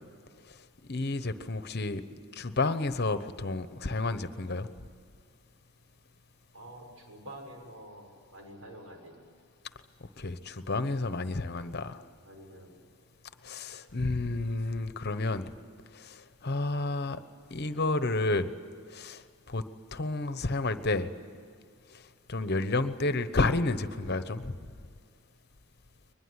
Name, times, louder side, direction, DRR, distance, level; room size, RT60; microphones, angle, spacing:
voice 1, 0.9-4.7 10.2-12.0 13.4-15.5 15.9-17.2 17.5-18.5 18.9-19.6 19.9-21.1 21.9-22.0 22.3-24.6, left 2 dB, 50° left, 12 dB, 1.0 m, -31 dB
voice 2, 6.5-8.1 8.3-9.2 12.2-12.7, right 1 dB, 70° right, 2 dB, 6.9 m, -47 dB
22.5 x 21.0 x 9.8 m, 2.2 s
head